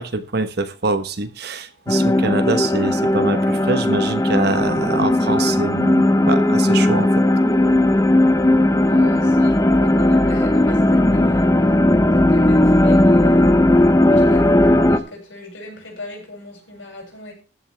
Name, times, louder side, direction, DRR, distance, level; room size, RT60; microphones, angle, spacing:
voice 1, 0.0-7.2, right 3 dB, 60° right, 10 dB, 1.2 m, -24 dB
sound 1, 1.9-15.0, left 1 dB, 15° left, 0.8 m, -16 dB
voice 2, 8.7-11.5 12.0-13.6 14.1-17.3, left 2 dB, 85° left, -1 dB, 7.1 m, -38 dB
14.5 x 11.0 x 3.5 m, 0.38 s
head